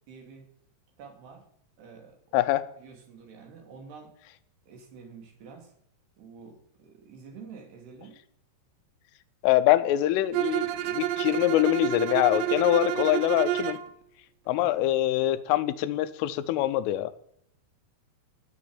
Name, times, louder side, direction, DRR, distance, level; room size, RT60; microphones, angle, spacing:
voice 1, 0.1-0.5 1.0-1.4 1.8-2.2 2.8-4.1 4.7-5.7 6.2-8.2 14.6-14.9, right 5 dB, 60° right, 3 dB, 4.3 m, -48 dB
voice 2, 2.3-2.6 9.4-13.8 14.5-17.1, left 14 dB, 85° left, 13 dB, 3.3 m, -24 dB
Bowed string instrument, 10.3-13.9, right 13 dB, 80° right, 2.5 m, -29 dB
19.0 x 7.3 x 8.7 m, 0.70 s
omnidirectional pair, 5.7 m